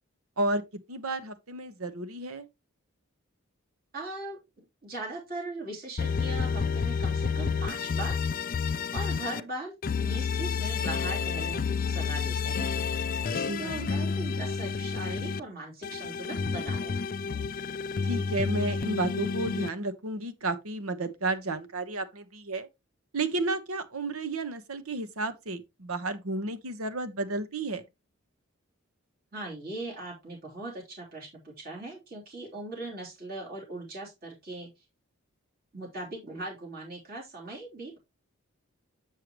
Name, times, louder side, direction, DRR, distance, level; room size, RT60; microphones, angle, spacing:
voice 1, 0.9-2.5 13.4-13.9 18.0-22.7 23.1-27.8, right 2 dB, 85° right, 1.1 m, -32 dB
voice 2, 3.9-8.2 8.9-16.9 29.3-34.7 35.7-38.0, right 2 dB, 45° right, 3.2 m, -40 dB
sound 1, 6.0-9.4 9.8-15.4 15.8-19.7, left 5 dB, 40° left, 0.4 m, -30 dB
7.6 x 6.4 x 3.0 m
head